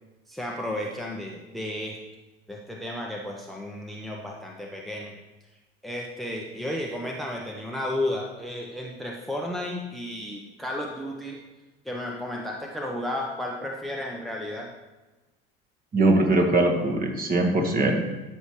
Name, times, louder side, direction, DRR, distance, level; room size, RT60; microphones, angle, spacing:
voice 1, 0.3-2.0 2.5-5.1 5.8-11.4 11.8-14.7, left 1 dB, ahead, -1 dB, 1.0 m, -33 dB
voice 2, 15.9-18.0, right 2 dB, 30° right, 1 dB, 1.7 m, -21 dB
13.5 x 5.6 x 3.2 m, 1.1 s
figure-of-eight pair, 65°, 30 cm